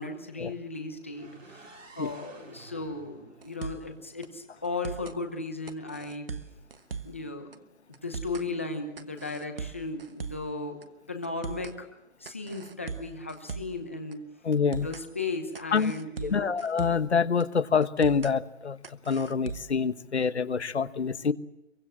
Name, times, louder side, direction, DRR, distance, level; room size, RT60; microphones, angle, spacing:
voice 1, 0.0-6.3 7.0-7.5 8.0-10.8 11.1-11.9 12.2-14.2 14.8-16.6, left 3 dB, 10° left, 5 dB, 0.9 m, -36 dB
sound 1, 1.1-5.0, right 3 dB, 85° right, 4.7 m, -52 dB
sound 2, 3.4-3.9 4.2-4.3 4.6-5.2 5.7-7.2 7.5-7.6 7.9-8.5 9.0-10.5 10.8-10.9 11.2-11.8 12.2-13.8 14.1-14.2 14.5-15.1 15.5-17.1 17.4-17.5 17.8-18.3 18.8-19.8, right 5 dB, 50° right, 1.2 m, -39 dB
voice 2, 14.4-14.9 15.7-15.9 16.2-18.8 19.1-21.3, left 6 dB, 60° left, 13 dB, 1.3 m, -26 dB
24.0 x 23.5 x 7.6 m, 0.89 s
hypercardioid pair, 180°, 37 cm